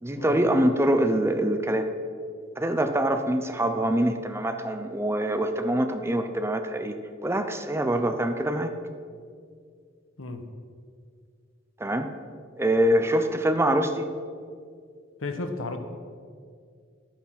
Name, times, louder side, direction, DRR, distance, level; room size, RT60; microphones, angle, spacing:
voice 1, 0.0-1.9 2.6-7.0 7.2-8.7 11.8-12.1 12.6-14.1, right 1 dB, 15° right, 7 dB, 0.6 m, -24 dB
voice 2, 15.2-15.8, left 2 dB, 85° left, 7 dB, 1.1 m, -33 dB
11.5 x 9.2 x 5.9 m, 2.2 s
head